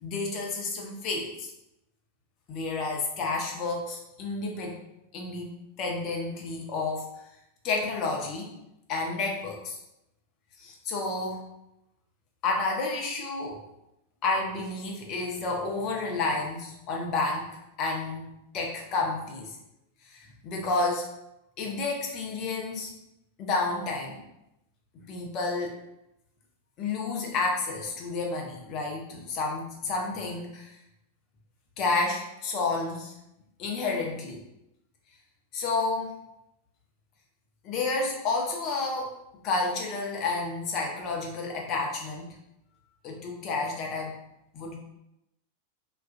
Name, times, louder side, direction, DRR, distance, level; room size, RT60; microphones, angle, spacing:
voice 1, 0.0-1.5 2.5-4.8 5.1-7.1 7.6-8.5 8.9-9.8 10.6-11.5 12.4-13.6 14.2-17.5 17.8-19.5 20.1-21.1 21.6-22.9 23.4-24.2 25.1-25.8 26.8-30.8 31.8-33.1 33.6-34.4 35.5-36.2 37.6-39.1 39.4-42.4 43.0-44.2 44.5-44.8, left 3 dB, 35° left, 0 dB, 0.5 m, -30 dB
2.4 x 2.3 x 2.5 m, 0.86 s
figure-of-eight pair, 90°, 0 cm